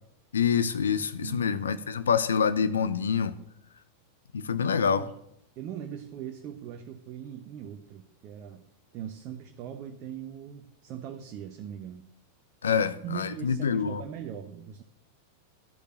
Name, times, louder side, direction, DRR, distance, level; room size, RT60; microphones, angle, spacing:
voice 1, 0.3-3.3 4.3-5.0 12.6-14.0, left 6 dB, 70° left, 13 dB, 0.7 m, -26 dB
voice 2, 0.9-1.6 4.7-5.1 5.6-8.6 8.9-12.1 12.7-14.8, right 9 dB, 40° right, 5 dB, 0.9 m, -41 dB
12.0 x 6.7 x 7.6 m, 0.74 s
figure-of-eight pair, 90°, 0 cm